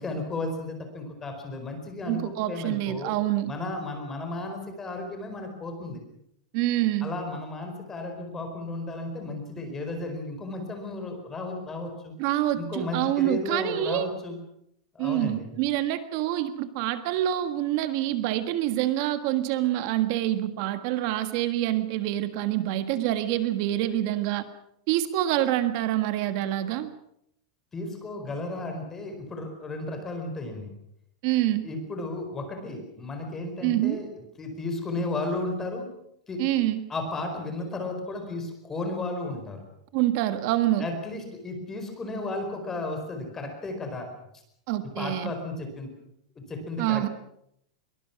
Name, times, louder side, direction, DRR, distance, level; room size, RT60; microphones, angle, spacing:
voice 1, 0.0-3.1 3.5-6.0 7.0-12.1 12.6-14.4 14.9-15.5 27.7-30.7 31.6-35.9 36.3-36.4 36.9-39.6 40.8-44.1 45.0-45.9 46.4-47.1, left 2 dB, 15° left, 5 dB, 4.8 m, -34 dB
voice 2, 2.1-3.5 6.5-7.1 12.2-14.1 15.0-24.5 24.9-26.9 31.2-31.7 33.6-34.0 36.4-36.8 39.9-40.9 44.7-45.3 46.8-47.1, right 13 dB, 45° right, 10 dB, 1.5 m, -26 dB
23.0 x 23.0 x 6.1 m, 0.74 s
supercardioid pair, 165°, 3 cm